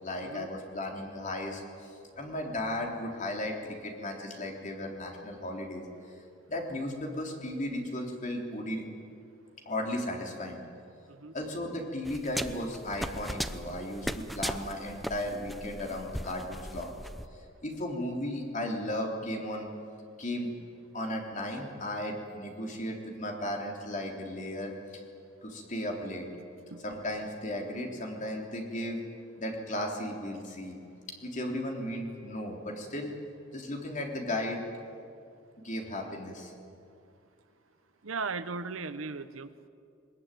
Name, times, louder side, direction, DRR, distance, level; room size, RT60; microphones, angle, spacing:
voice 1, 0.0-5.8 6.5-8.8 9.7-10.6 11.3-16.9 17.6-19.7 20.2-20.5 20.9-25.0 25.4-26.3 26.8-29.0 29.4-30.8 31.2-33.1 33.5-34.6 35.6-36.5, left 1 dB, 40° left, 1 dB, 3.6 m, -35 dB
sound 1, 12.1-17.3, equal, ahead, 0.6 m, -38 dB
voice 2, 38.0-39.7, right 4 dB, 90° right, 13 dB, 1.0 m, -37 dB
21.5 x 21.0 x 9.2 m, 2.5 s
head